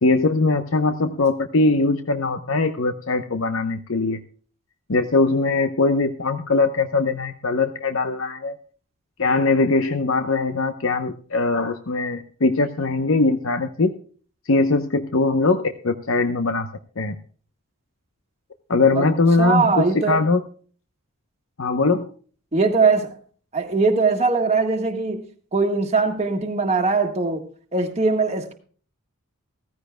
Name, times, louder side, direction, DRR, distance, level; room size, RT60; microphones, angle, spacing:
voice 1, 0.0-4.2 4.9-8.6 9.2-13.9 14.5-16.7 17.0-17.2 18.7-20.4 21.6-22.1, left 3 dB, 65° left, 0.9 m, -21 dB
voice 2, 19.4-20.2 22.5-23.1 23.5-25.2 25.5-27.4 27.7-28.5, right 4 dB, 30° right, 1.6 m, -21 dB
15.5 x 15.0 x 2.2 m
head